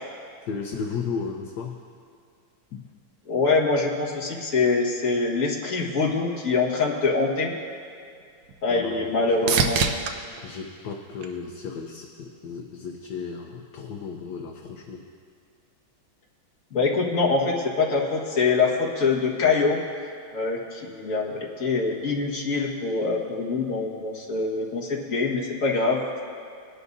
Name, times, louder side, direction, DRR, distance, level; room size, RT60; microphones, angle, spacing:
voice 1, 0.5-1.8 2.7-2.8 8.7-9.7 10.4-15.1, left 5 dB, 65° left, 1 dB, 1.3 m, -34 dB
voice 2, 3.3-7.5 8.6-9.8 16.7-19.8 20.3-26.0, left 4 dB, 40° left, -3 dB, 1.9 m, -24 dB
sound 1, 7.7-12.0 12.5-13.1 20.9-21.0, right 5 dB, 65° right, 1.1 m, -30 dB
21.0 x 11.0 x 2.6 m, 2.3 s
omnidirectional pair, 2.2 m